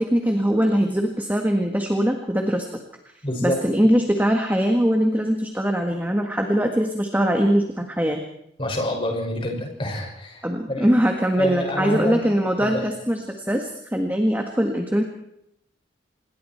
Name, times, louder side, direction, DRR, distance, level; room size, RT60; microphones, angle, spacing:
voice 1, 0.0-2.6 3.4-8.2 10.4-15.0, equal, 10° right, 3 dB, 1.7 m, -22 dB
voice 2, 3.2-3.6 8.6-10.4 10.7-10.9 11.4-12.2 12.6-12.9, left 1 dB, 25° left, 1 dB, 6.3 m, -27 dB
27.5 x 21.0 x 4.6 m, 0.79 s
head